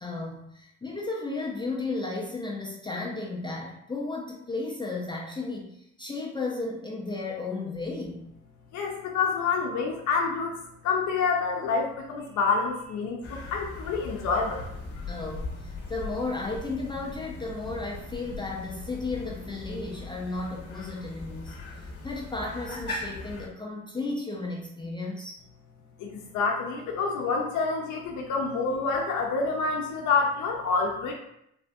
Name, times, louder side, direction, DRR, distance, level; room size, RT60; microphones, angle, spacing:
voice 1, 0.0-8.3 15.1-21.6 22.0-25.4, left 3 dB, 15° left, -3 dB, 0.5 m, -34 dB
voice 2, 8.7-10.6 10.8-14.6 26.0-31.1, left 4 dB, 75° left, 0 dB, 0.6 m, -27 dB
sound 1, 13.2-23.5, left 3 dB, 50° left, 0.9 m, -39 dB
3.5 x 2.5 x 2.2 m, 0.77 s
cardioid pair, 90°, 30 cm